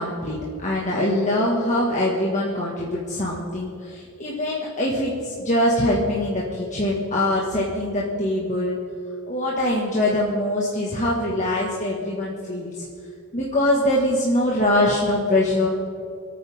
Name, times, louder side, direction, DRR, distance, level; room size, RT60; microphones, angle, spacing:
voice 1, 0.0-8.8 9.3-12.9 13.3-15.7, left 1 dB, 35° left, -5 dB, 1.8 m, -23 dB
27.0 x 9.4 x 3.7 m, 2.3 s
head